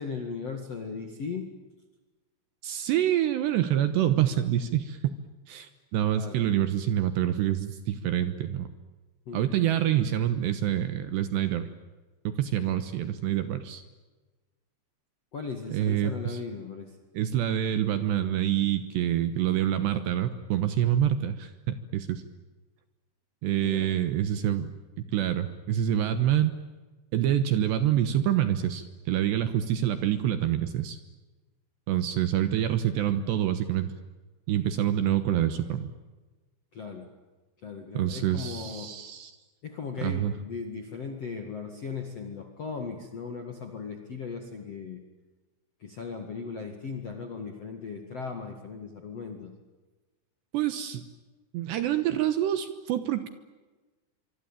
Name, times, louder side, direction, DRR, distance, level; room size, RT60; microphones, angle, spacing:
voice 1, 0.0-1.5 6.1-6.4 9.3-9.5 15.3-16.9 23.6-23.9 36.7-37.1 37.6-38.9 39.6-45.0 45.8-49.5, left 5 dB, 55° left, 4 dB, 1.8 m, -37 dB
voice 2, 2.6-5.1 5.5-8.7 9.3-11.7 12.2-13.8 15.7-16.4 17.1-22.2 23.4-24.7 25.0-26.5 27.1-31.0 31.9-33.9 34.5-35.9 37.9-39.3 40.0-40.3 50.5-51.0 51.5-53.3, right 11 dB, 70° right, 10 dB, 2.9 m, -26 dB
25.0 x 24.5 x 9.1 m, 1.2 s
omnidirectional pair, 6.0 m